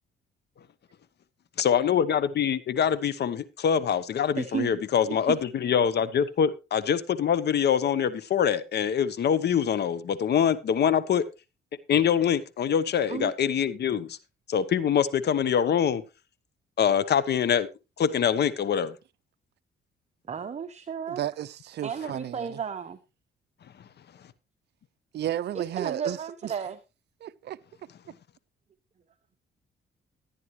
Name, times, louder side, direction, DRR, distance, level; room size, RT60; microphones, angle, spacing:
voice 1, 1.6-11.2 11.9-14.2 14.5-16.0 16.8-17.7 18.0-18.9, left 8 dB, 55° left, 1.0 m, -24 dB
voice 2, 4.4-4.8 5.1-5.4 13.1-13.3 20.3-21.2 21.8-23.0 25.5-26.8, right 7 dB, 35° right, 0.9 m, -33 dB
voice 3, 21.1-22.6 25.1-26.2 27.2-27.6, right 12 dB, 60° right, 0.5 m, -33 dB
14.0 x 9.5 x 3.1 m
cardioid pair, 90°, 20 cm